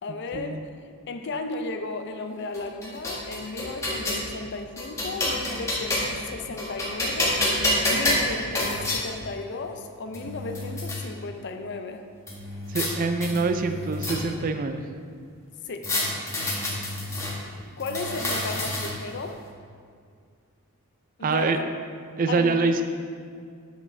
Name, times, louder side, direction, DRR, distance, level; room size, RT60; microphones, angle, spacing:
voice 1, 0.0-0.7 1.1-7.4 7.9-12.0 15.6-15.9 16.4-16.8 17.8-19.4 21.2-21.6 22.3-22.8, left 3 dB, 50° left, 6 dB, 0.5 m, -35 dB
sound 1, 2.5-4.2 4.8-6.2 6.6-9.0 9.8-9.9 10.1-11.0 12.3-12.9 13.2-14.5 15.8-17.3 17.8-19.1, left 1 dB, 15° left, 1.2 m, -28 dB
voice 2, 12.7-14.8 21.2-21.6 22.2-22.8, right 3 dB, 40° right, 7 dB, 0.3 m, -25 dB
7.3 x 7.1 x 3.3 m, 2.2 s
head